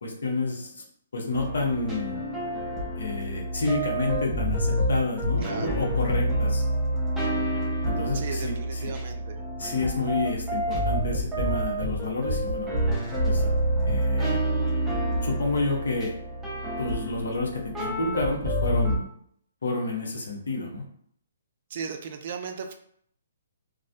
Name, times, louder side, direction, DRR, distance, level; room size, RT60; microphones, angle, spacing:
voice 1, 0.0-0.8 1.1-2.2 3.0-6.6 7.9-8.9 9.6-12.7 13.2-13.5 13.9-14.4 15.2-16.1 16.8-19.0 19.6-20.9, left 2 dB, 80° left, 0 dB, 0.8 m, -29 dB
sound 1, 1.3-19.0, right 1 dB, 5° right, 0.6 m, -28 dB
voice 2, 5.4-5.8 8.1-9.4 21.7-22.7, right 5 dB, 50° right, 5 dB, 0.3 m, -36 dB
2.3 x 2.1 x 2.6 m, 0.64 s
hypercardioid pair, 145°, 0 cm